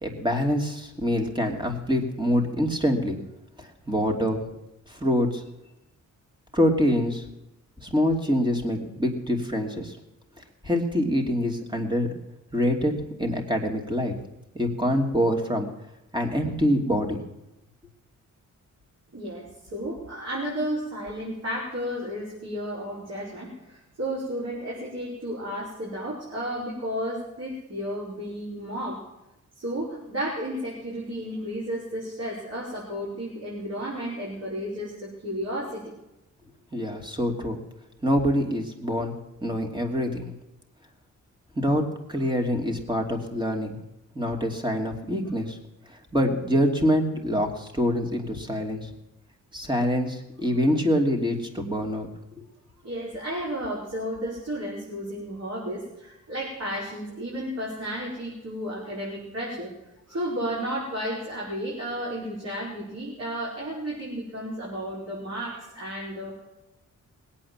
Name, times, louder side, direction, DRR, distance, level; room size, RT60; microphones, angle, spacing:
voice 1, 0.0-3.2 3.6-4.4 4.9-5.4 6.5-7.2 7.8-10.0 10.6-12.1 12.5-12.9 13.2-14.1 14.5-15.7 16.1-17.2 36.7-37.6 38.0-39.1 39.4-40.3 41.5-41.8 42.1-43.8 44.1-45.6 45.9-48.9 49.5-52.1 52.4-52.5, equal, 15° right, 3 dB, 3.0 m, -25 dB
voice 2, 19.1-29.0 29.5-35.9 52.8-59.7 60.1-66.4, equal, 50° right, -5 dB, 5.2 m, -33 dB
19.5 x 8.7 x 7.3 m, 0.92 s
cardioid pair, 75°, 31 cm